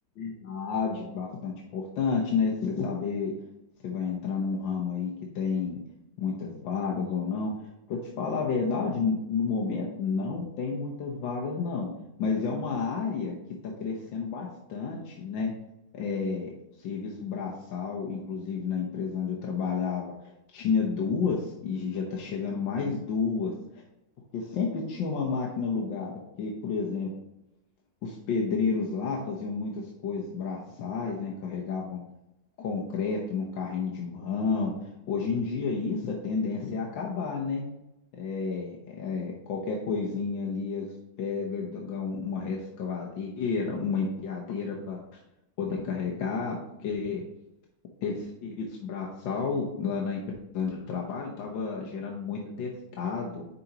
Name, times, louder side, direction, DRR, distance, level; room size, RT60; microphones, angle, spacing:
voice 1, 0.2-3.3 3.8-5.8 6.2-7.5 7.9-11.9 12.2-13.3 13.6-15.5 15.9-16.5 16.8-20.1 20.5-23.5 24.3-26.1 26.4-27.1 28.0-32.0 32.6-34.7 35.1-37.6 38.2-40.9 41.2-45.0 45.6-46.5 46.8-47.2 48.0-50.2 50.5-53.5, left 5 dB, 85° left, -2 dB, 1.7 m, -30 dB
10.5 x 4.1 x 2.9 m, 0.89 s
omnidirectional pair, 2.0 m